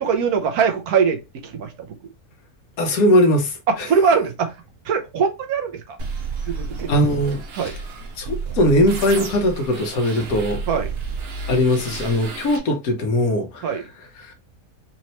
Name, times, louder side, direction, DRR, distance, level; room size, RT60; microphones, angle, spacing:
voice 1, 0.0-1.2 1.4-1.7 3.9-4.5 4.8-6.0 6.5-6.9 7.6-7.7 10.7-10.9 13.6-13.8, right 6 dB, 85° right, 1.3 m, -21 dB
voice 2, 2.8-3.9 6.9-7.4 8.2-10.6 11.5-13.7 14.2-14.3, left 1 dB, 75° left, 1.4 m, -20 dB
sound 1, 6.0-12.6, right 4 dB, 50° right, 0.9 m, -31 dB
4.3 x 2.9 x 3.0 m
omnidirectional pair, 1.6 m